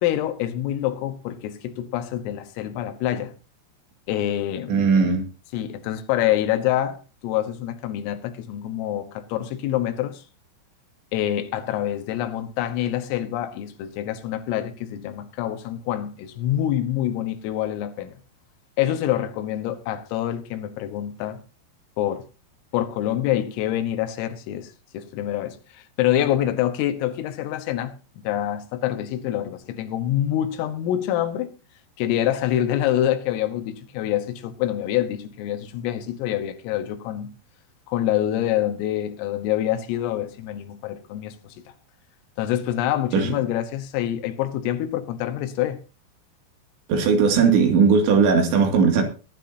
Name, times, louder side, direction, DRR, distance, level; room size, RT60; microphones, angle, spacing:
voice 1, 0.0-3.3 4.1-5.1 5.5-10.2 11.1-18.1 18.8-21.4 22.0-22.2 22.7-31.5 32.0-37.4 37.9-41.6 42.4-45.8, left 12 dB, 80° left, 3.8 m, -26 dB
voice 2, 4.7-5.2 43.1-43.3 46.9-49.0, right 5 dB, 65° right, 4.4 m, -18 dB
19.5 x 11.5 x 2.8 m
omnidirectional pair, 5.9 m